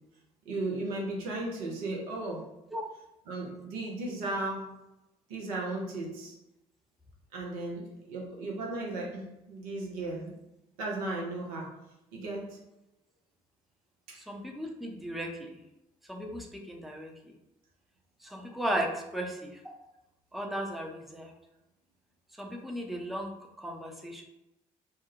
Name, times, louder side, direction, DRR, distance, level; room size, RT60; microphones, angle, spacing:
voice 1, 0.5-2.5 3.3-4.7 5.3-6.3 7.3-10.3 10.8-11.7 12.1-12.6 14.1-14.2, right 2 dB, 80° right, -2 dB, 0.6 m, -35 dB
voice 2, 14.1-15.6 16.1-17.3 18.2-19.7 20.3-21.3 22.4-23.3 23.6-24.2, right 1 dB, ahead, 1 dB, 0.5 m, -36 dB
2.3 x 2.0 x 2.8 m, 0.89 s
hypercardioid pair, 45°, 19 cm